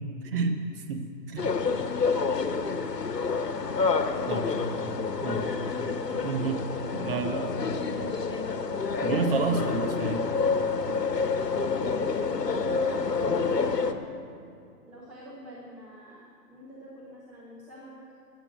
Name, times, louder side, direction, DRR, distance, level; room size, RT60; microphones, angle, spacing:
voice 1, 0.2-0.5 0.9-1.5 4.3-4.5 5.2-5.5 6.2-6.7 6.9-7.5 9.0-10.3, right 4 dB, 35° right, 4 dB, 1.3 m, -29 dB
sound 1, 1.4-13.9, left 4 dB, 75° left, 1.3 m, -28 dB
voice 2, 1.4-1.7 3.9-5.2 6.1-6.5 8.1-8.6 12.7-14.0 14.9-18.0, equal, ahead, -9 dB, 0.6 m, -46 dB
13.0 x 9.1 x 7.9 m, 2.5 s
figure-of-eight pair, 140°, 48 cm